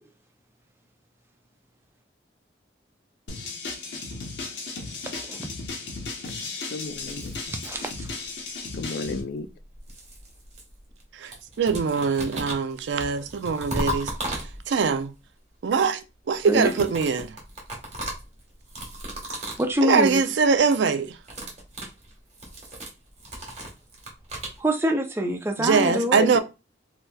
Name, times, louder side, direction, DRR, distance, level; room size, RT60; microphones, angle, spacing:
sound 1, 3.3-9.2, left 3 dB, 90° left, 0.9 m, -35 dB
voice 1, 5.0-5.5 7.5-8.1 16.5-16.7 19.6-20.2 24.6-26.2, equal, 15° right, 0.4 m, -25 dB
voice 2, 6.7-7.3 8.7-9.5 25.8-26.3, left 4 dB, 60° left, 0.3 m, -32 dB
sound 2, 6.9-8.5 9.4-11.0 11.3-14.9 16.4-19.7 20.0-20.3 20.6-20.9 21.2-24.6, right 1 dB, 35° right, 1.2 m, -36 dB
voice 3, 11.1-15.1 15.6-17.4 19.8-21.2 25.6-26.4, right 5 dB, 80° right, 0.4 m, -23 dB
3.1 x 2.9 x 2.2 m
head